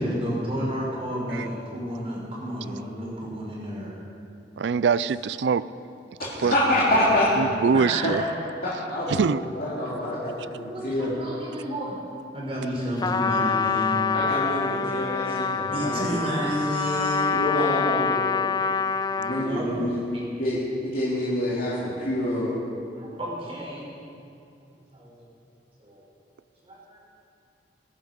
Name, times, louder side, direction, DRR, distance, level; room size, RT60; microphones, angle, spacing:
voice 1, 0.0-3.9 6.4-7.2 7.7-8.2 10.7-12.0 12.3-14.0 15.3-15.4 15.7-17.3 19.4-19.7 20.0-20.2 23.0-23.9 24.6-25.1 25.8-26.0 26.6-27.0, equal, 35° right, 4.8 m, -31 dB
voice 2, 4.6-5.6 6.4-6.5 7.4-8.2 9.1-9.4, right 5 dB, 80° right, 0.4 m, -23 dB
voice 3, 6.4-7.3 8.0-8.1 8.6-9.3 9.6-11.1 14.1-16.1 17.3-18.4 19.1-19.9 20.4-22.5, left 1 dB, 55° left, 3.0 m, -26 dB
Trumpet, 13.0-19.6, left 5 dB, 25° left, 0.3 m, -26 dB
22.0 x 10.5 x 5.3 m
head